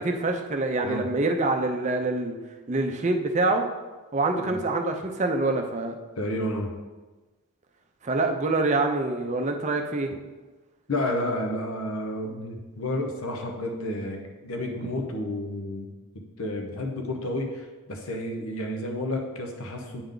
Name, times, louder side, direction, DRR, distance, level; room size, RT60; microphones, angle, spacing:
voice 1, 0.0-2.4 2.7-3.7 4.1-5.9 8.0-10.1 14.8-14.9, right 2 dB, 35° right, 4 dB, 0.5 m, -25 dB
voice 2, 6.2-6.7 10.9-15.9 16.4-20.0, left 1 dB, 75° left, 3 dB, 0.9 m, -31 dB
8.8 x 3.5 x 3.8 m, 1.2 s
head